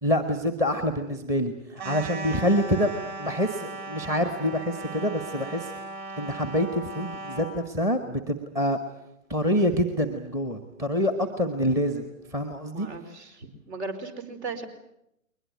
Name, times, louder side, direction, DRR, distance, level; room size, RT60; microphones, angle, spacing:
voice 1, 0.0-2.9 3.2-5.7 6.2-8.8 9.3-12.0 12.3-12.9, equal, 10° right, 9 dB, 1.1 m, -26 dB
sound 1, 1.8-7.6, right 3 dB, 30° right, 4.7 m, -37 dB
voice 2, 12.7-14.7, right 3 dB, 55° right, 11 dB, 4.7 m, -37 dB
21.5 x 20.5 x 9.3 m, 0.80 s
figure-of-eight pair, 140°, 41 cm